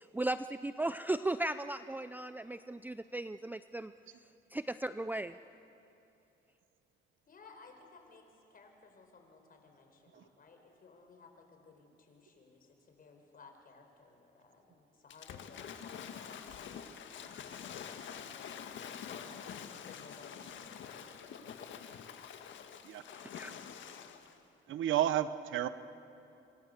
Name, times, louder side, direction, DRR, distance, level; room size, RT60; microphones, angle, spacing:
voice 1, 0.0-3.9 4.5-5.3 23.3-23.5, right 2 dB, 10° right, 12 dB, 0.5 m, -36 dB
voice 2, 7.3-17.9 18.3-19.5 19.8-21.4, left 4 dB, 45° left, 4 dB, 4.7 m, -58 dB
Waves surf / Splash splatter, 15.1-24.4, left 8 dB, 70° left, 1.7 m, -46 dB
voice 3, 24.7-25.7, right 11 dB, 75° right, 13 dB, 1.0 m, -31 dB
27.0 x 26.0 x 6.8 m, 2.8 s
cardioid pair, 90°, 20 cm